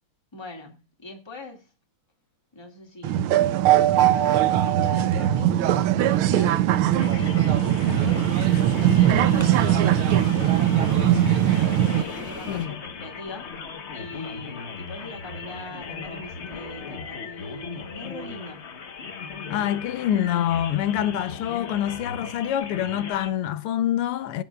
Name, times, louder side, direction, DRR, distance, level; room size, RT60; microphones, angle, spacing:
voice 1, 0.3-1.7 2.5-3.5 3.8-6.6 7.2-8.2 8.8-11.3 11.9-13.5 13.9-18.7, left 2 dB, 10° left, 1.9 m, -42 dB
sound 1, 3.0-12.0, right 12 dB, 80° right, 1.5 m, -20 dB
sound 2, 4.6-12.7, right 1 dB, 10° right, 1.7 m, -40 dB
sound 3, 6.9-23.3, left 4 dB, 45° left, 0.9 m, -37 dB
voice 2, 19.5-24.4, left 11 dB, 85° left, 1.7 m, -26 dB
22.0 x 7.9 x 2.3 m
omnidirectional pair, 2.4 m